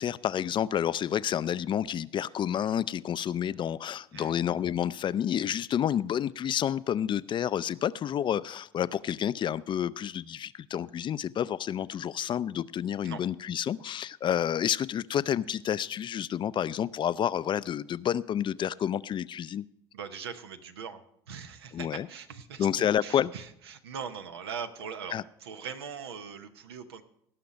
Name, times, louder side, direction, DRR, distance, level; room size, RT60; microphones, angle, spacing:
voice 1, 0.0-19.6 21.7-22.1 22.6-23.3 25.1-25.2, left 9 dB, 40° left, 18 dB, 0.4 m, -29 dB
voice 2, 19.9-27.0, right 6 dB, 90° right, 9 dB, 0.8 m, -41 dB
17.5 x 5.9 x 5.2 m, 0.74 s
hypercardioid pair, 70°, 13 cm